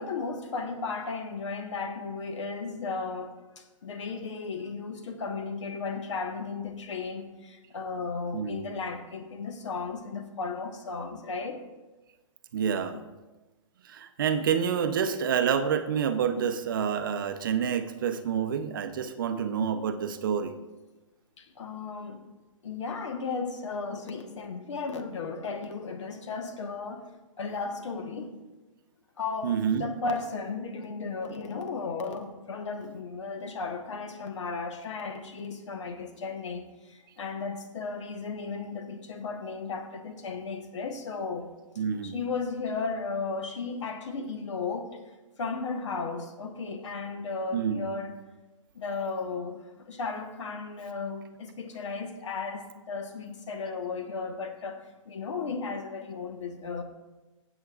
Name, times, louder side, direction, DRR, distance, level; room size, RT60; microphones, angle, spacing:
voice 1, 0.0-11.6 21.4-22.2 22.6-27.1 27.4-28.4 29.2-41.5 42.0-45.0 45.4-48.1 48.7-56.8, left 4 dB, 60° left, 1.2 m, -35 dB
voice 2, 8.3-8.8 12.5-13.0 13.8-20.6 29.4-29.8 41.8-42.2 47.5-47.9, right 7 dB, 40° right, 0.6 m, -28 dB
16.0 x 8.0 x 2.4 m
hypercardioid pair, 175°, 17 cm